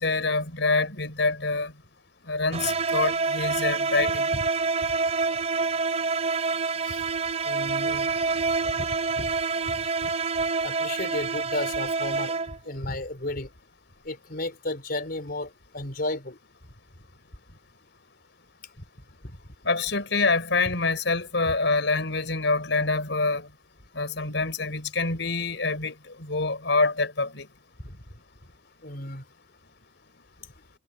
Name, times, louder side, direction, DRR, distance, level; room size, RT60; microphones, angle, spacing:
voice 1, 0.0-1.7 2.3-4.3 19.6-23.5 23.9-27.5, left 3 dB, 75° left, 5.1 m, -26 dB
sound 1, 2.5-12.7, right 4 dB, 40° right, 3.1 m, -27 dB
voice 2, 7.4-8.4 8.8-9.3 9.7-10.1 10.6-12.4 12.7-13.5 14.0-16.4 19.2-19.4 20.6-20.7 21.5-21.6 27.8-28.0 28.8-29.2, left 2 dB, 55° left, 4.1 m, -34 dB
head